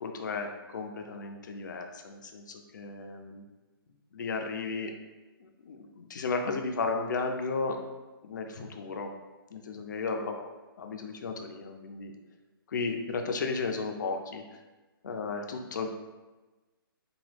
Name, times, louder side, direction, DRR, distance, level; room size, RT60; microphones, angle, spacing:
voice 1, 0.0-3.4 4.1-4.9 5.4-7.8 8.2-9.1 9.5-10.3 10.8-12.1 12.7-14.4 15.0-15.9, left 4 dB, 50° left, 4 dB, 0.4 m, -34 dB
3.0 x 2.2 x 3.2 m, 1.2 s
hypercardioid pair, 170°, 13 cm